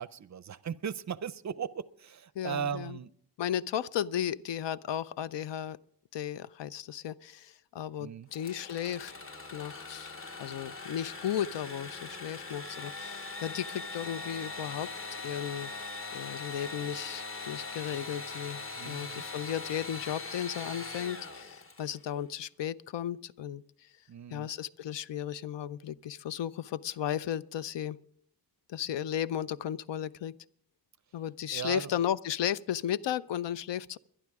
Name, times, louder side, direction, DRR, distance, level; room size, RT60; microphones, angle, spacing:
voice 1, 0.0-3.1 8.0-8.3 18.7-19.2 24.1-24.5 31.5-31.9, right 7 dB, 45° right, 0.4 m, -37 dB
voice 2, 2.4-3.0 3.4-5.8 6.1-9.1 9.5-10.1 10.4-14.9 15.2-15.7 16.1-23.9 24.3-28.0 28.7-30.3 31.1-34.0, left 10 dB, 80° left, 0.6 m, -35 dB
Engine / Sawing, 8.3-22.0, left 3 dB, 30° left, 1.0 m, -41 dB
21.5 x 11.0 x 3.6 m
wide cardioid pair, 165°, 42 cm